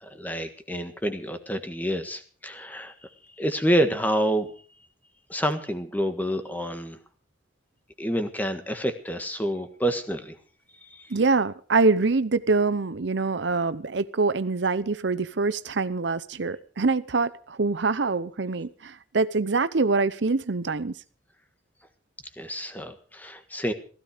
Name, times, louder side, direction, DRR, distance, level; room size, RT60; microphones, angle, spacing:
voice 1, 0.0-4.5 5.3-7.0 8.0-10.4 10.8-11.1 22.4-23.7, equal, 10° left, 8 dB, 1.6 m, -28 dB
voice 2, 11.1-20.9, right 3 dB, 70° right, 15 dB, 0.7 m, -24 dB
16.0 x 15.0 x 5.0 m, 0.41 s
head